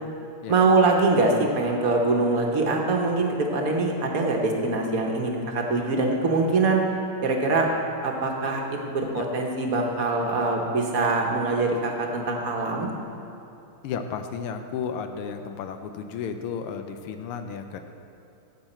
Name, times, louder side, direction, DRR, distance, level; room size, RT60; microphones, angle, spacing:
voice 1, 0.5-6.8 7.2-7.7 8.0-12.9, right 3 dB, 50° right, 1 dB, 1.2 m, -23 dB
voice 2, 13.8-17.8, left 6 dB, 85° left, 7 dB, 1.6 m, -33 dB
13.0 x 8.0 x 4.4 m, 2.8 s
omnidirectional pair, 2.4 m